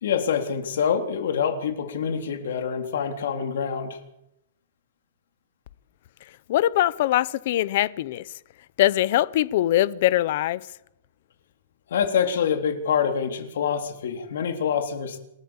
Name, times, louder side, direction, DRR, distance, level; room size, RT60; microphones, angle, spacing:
voice 1, 0.0-4.0 11.9-15.2, left 7 dB, 70° left, 3.6 m, -26 dB
voice 2, 6.5-8.2 8.8-10.6, left 14 dB, 45° left, 0.8 m, -22 dB
28.0 x 13.5 x 7.3 m
supercardioid pair, 170°, 0 cm